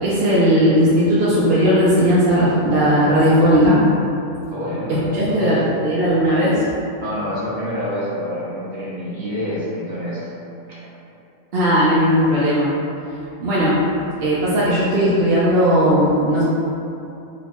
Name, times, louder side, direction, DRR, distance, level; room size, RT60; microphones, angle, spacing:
voice 1, 0.0-3.8 5.0-6.6 11.5-12.7 13.4-13.8 14.2-16.4, equal, 60° right, -9 dB, 0.7 m, -17 dB
voice 2, 4.5-5.8 7.0-10.3, equal, 40° right, -9 dB, 1.0 m, -27 dB
3.0 x 2.2 x 4.2 m, 2.8 s
omnidirectional pair, 1.4 m